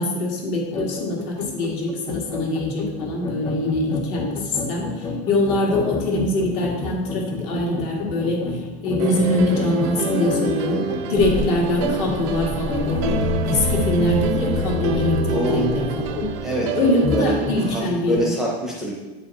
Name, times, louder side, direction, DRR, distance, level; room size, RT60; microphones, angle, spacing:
voice 1, 0.0-16.3 16.7-18.3, left 1 dB, 50° left, -2 dB, 2.1 m, -23 dB
sound 1, 0.7-18.2, left 3 dB, 20° left, 0.4 m, -29 dB
sound 2, 9.0-17.9, right 8 dB, 50° right, 0.6 m, -29 dB
sound 3, 11.1-16.4, equal, 35° left, 0.9 m, -33 dB
voice 2, 15.3-15.9 16.4-16.8 17.1-17.4 17.7-18.9, equal, ahead, -3 dB, 0.8 m, -25 dB
8.7 x 5.0 x 4.1 m, 1.2 s
supercardioid pair, 170°, 20 cm